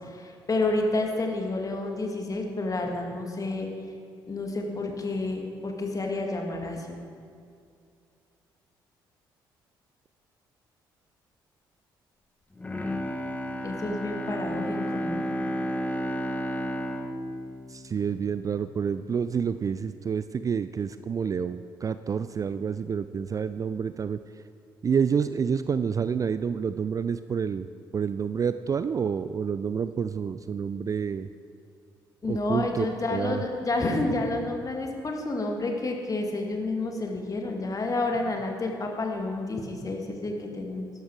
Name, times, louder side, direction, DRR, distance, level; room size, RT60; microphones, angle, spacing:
voice 1, 0.0-3.7 4.3-7.0 13.6-15.2 32.2-40.9, left 2 dB, 30° left, 2 dB, 2.0 m, -30 dB
Bowed string instrument, 12.5-18.8 19.2-19.3, equal, 15° left, 1.2 m, -32 dB
voice 2, 17.7-24.4 24.8-31.3 32.3-32.9 33.1-33.4, right 6 dB, 30° right, 13 dB, 0.4 m, -28 dB
13.0 x 11.5 x 4.8 m, 2.3 s
figure-of-eight pair, 45°, 11 cm